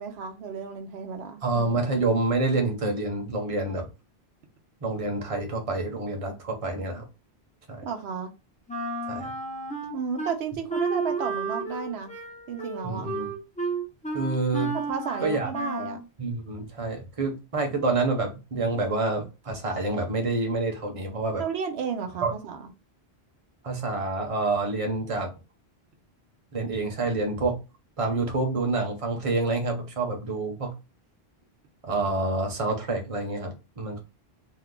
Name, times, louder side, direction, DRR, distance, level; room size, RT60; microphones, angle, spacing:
voice 1, 0.0-1.4 7.8-8.3 9.9-12.1 12.5-13.1 14.9-16.0 21.4-22.7, right 6 dB, 80° right, 6 dB, 0.8 m, -33 dB
voice 2, 1.4-3.9 4.8-7.0 7.7-7.8 9.1-9.3 12.8-13.3 14.1-14.8 15.2-15.5 16.2-21.4 22.2-22.3 23.6-25.3 26.5-27.6 28.0-30.7 31.8-34.0, right 3 dB, 35° right, 3 dB, 0.8 m, -27 dB
Wind instrument woodwind instrument, 8.7-10.3 10.7-16.0, right 3 dB, 10° left, 0.5 m, -32 dB
2.7 x 2.2 x 3.6 m, 0.28 s
omnidirectional pair, 1.1 m